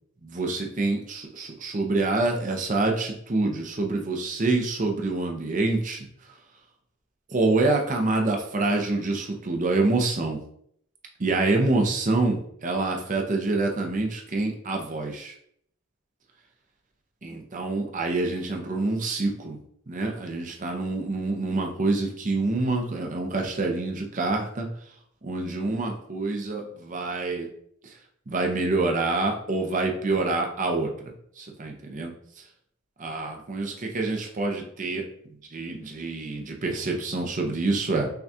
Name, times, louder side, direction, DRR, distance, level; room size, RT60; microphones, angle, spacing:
voice 1, 0.2-6.1 7.3-10.4 11.2-15.3 17.2-19.6 19.9-24.7 25.2-27.5 28.3-30.9 31.4-32.1 33.0-35.1 35.5-38.1, right 3 dB, 40° right, 2 dB, 0.6 m, -26 dB
5.7 x 2.3 x 2.7 m, 0.68 s
head